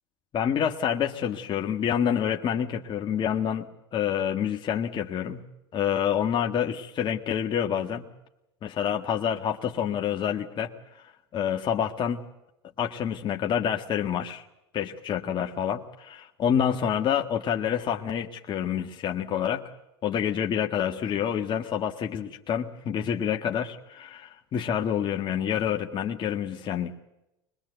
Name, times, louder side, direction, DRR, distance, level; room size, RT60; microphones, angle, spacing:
voice 1, 0.3-5.4 5.7-8.1 8.6-10.7 11.0-12.2 12.8-14.4 14.7-19.6 20.0-26.9, left 8 dB, 35° left, 3 dB, 1.7 m, -28 dB
23.5 x 21.5 x 8.0 m, 0.90 s
hypercardioid pair, 100°, 14 cm